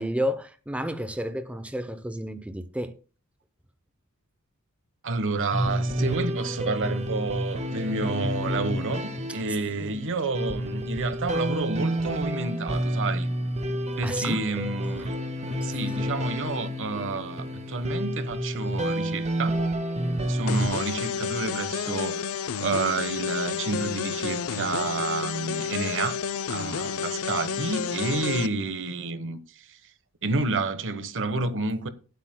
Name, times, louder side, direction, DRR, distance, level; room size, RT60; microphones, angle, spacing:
voice 1, 0.0-3.0 9.5-9.9 14.0-14.4 15.6-15.8, equal, 5° right, 0.6 m, -31 dB
voice 2, 5.0-13.3 14.0-15.2 15.6-19.6 20.3-22.3 22.6-26.2 26.5-29.8 30.2-31.9, right 3 dB, 60° right, 1.1 m, -30 dB
sound 1, 5.5-20.7, equal, 30° right, 1.3 m, -29 dB
sound 2, 20.5-28.5, left 6 dB, 70° left, 0.6 m, -30 dB
18.5 x 8.2 x 2.2 m
head